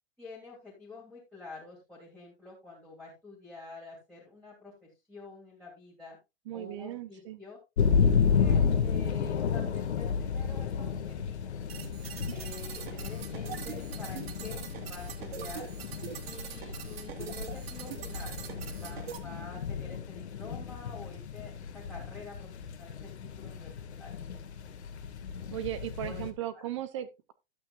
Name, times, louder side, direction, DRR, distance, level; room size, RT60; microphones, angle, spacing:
voice 1, 0.2-6.2 6.5-7.6 8.4-11.6 12.3-15.7 16.2-18.5 18.8-23.7 24.0-24.1 26.0-26.2, left 3 dB, ahead, 2.6 m, -48 dB
voice 2, 6.5-7.4 25.5-27.3, right 12 dB, 30° right, 0.6 m, -37 dB
sound 1, 7.8-26.3, left 6 dB, 85° left, 2.1 m, -32 dB
sound 2, 11.7-19.2, right 7 dB, 65° right, 2.5 m, -42 dB
12.0 x 8.6 x 2.4 m
supercardioid pair, 170°, 33 cm